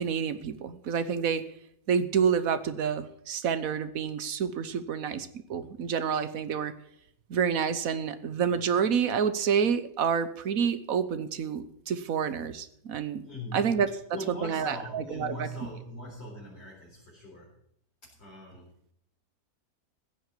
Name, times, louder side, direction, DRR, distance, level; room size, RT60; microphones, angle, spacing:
voice 1, 0.0-1.4 1.9-6.7 7.3-13.2 13.5-13.9 14.3-15.5, right 7 dB, 60° right, 12 dB, 1.4 m, -28 dB
voice 2, 13.2-13.8 14.1-17.5 18.0-18.7, equal, 40° left, -6 dB, 4.6 m, -41 dB
15.5 x 7.8 x 8.4 m, 0.70 s
omnidirectional pair, 1.7 m